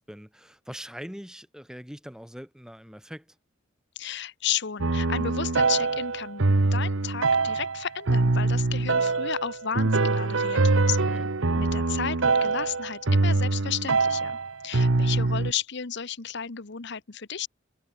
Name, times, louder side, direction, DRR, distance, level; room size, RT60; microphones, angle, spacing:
voice 1, 0.0-3.4 11.1-11.3, equal, 5° right, 2.4 m, -42 dB
voice 2, 4.0-11.0 11.5-14.4 14.6-17.5, left 8 dB, 60° left, 1.1 m, -33 dB
sound 1, 4.8-15.5, right 3 dB, 85° right, 1.1 m, -24 dB
head